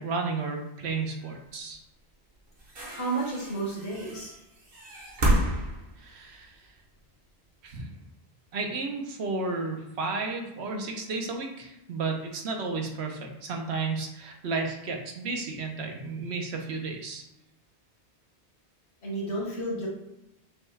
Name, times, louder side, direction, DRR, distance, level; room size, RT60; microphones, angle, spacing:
voice 1, 0.0-1.8 6.0-6.6 7.6-7.9 8.5-17.3, right 3 dB, 75° right, 2 dB, 1.0 m, -33 dB
sound 1, 1.7-1.8 2.5-6.8 7.8-7.9, right 1 dB, 55° right, 1.2 m, -30 dB
voice 2, 2.9-4.3 19.0-19.9, right 2 dB, 75° left, -3 dB, 1.7 m, -31 dB
6.2 x 2.3 x 3.2 m, 0.90 s
omnidirectional pair, 1.1 m